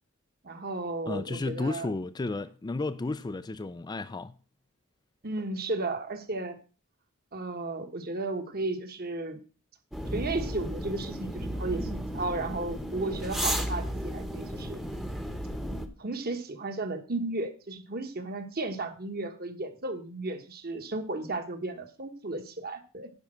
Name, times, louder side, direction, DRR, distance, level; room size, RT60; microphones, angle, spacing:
voice 1, 0.4-1.9 5.2-6.6 7.3-9.4 10.1-14.8 16.0-23.1, right 2 dB, 45° right, 1.5 m, -34 dB
voice 2, 1.1-4.3, left 2 dB, 20° left, 0.4 m, -33 dB
sound 1, 9.9-15.9, equal, ahead, 0.9 m, -34 dB
10.5 x 5.5 x 6.2 m
head